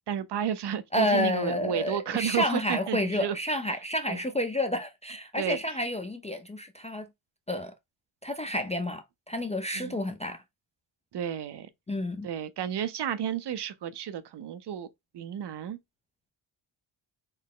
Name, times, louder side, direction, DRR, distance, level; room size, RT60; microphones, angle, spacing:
voice 1, 0.1-3.4 4.1-4.2 5.4-5.6 9.7-10.0 11.1-11.7 12.2-14.9 15.1-15.8, right 9 dB, 60° right, 0.6 m, -32 dB
voice 2, 0.9-7.1 7.5-7.7 8.2-10.4 11.9-12.3, left 1 dB, 15° left, 0.3 m, -30 dB
4.0 x 2.1 x 3.6 m
cardioid pair, 75°, 46 cm